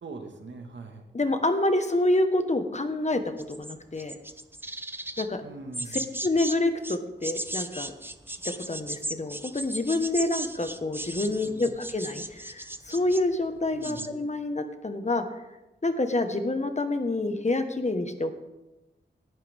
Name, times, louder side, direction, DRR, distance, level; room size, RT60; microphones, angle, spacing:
voice 1, 0.0-1.0 5.4-6.0 11.2-11.6 13.7-14.1, right 3 dB, 90° right, 4 dB, 1.9 m, -42 dB
voice 2, 1.1-3.2 3.5-4.1 5.2-5.4 5.9-7.9 8.3-8.4 8.7-15.2 15.8-18.3, left 2 dB, 40° left, 7 dB, 1.4 m, -27 dB
sound 1, 3.4-5.3 5.7-6.6 6.8-13.3 13.7-14.1, right 1 dB, 10° right, 0.8 m, -36 dB
18.0 x 11.5 x 3.6 m, 1.0 s
wide cardioid pair, 65°, 18 cm